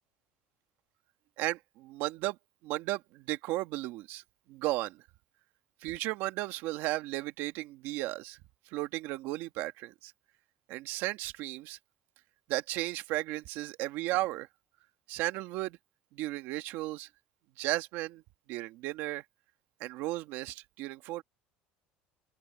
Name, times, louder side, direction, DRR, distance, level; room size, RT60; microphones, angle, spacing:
voice 1, 1.4-2.4 2.6-4.2 4.5-5.0 5.8-8.4 8.7-10.1 10.7-11.8 12.5-14.5 15.1-15.8 16.1-17.1 17.6-18.2 18.5-19.2 19.8-21.2, right 18 dB, 65° right, 1.8 m, -34 dB
open air
cardioid pair, 140°, 4 cm